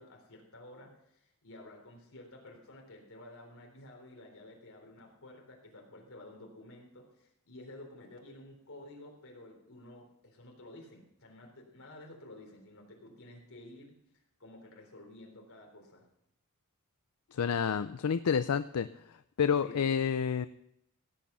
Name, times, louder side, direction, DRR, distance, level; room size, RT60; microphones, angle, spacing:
voice 1, 0.0-14.0 14.4-16.1 19.5-20.2, left 1 dB, 65° left, 1 dB, 3.7 m, -52 dB
voice 2, 17.3-18.9 19.4-20.5, left 7 dB, 85° left, 12 dB, 0.5 m, -29 dB
16.5 x 8.6 x 5.6 m, 0.80 s
head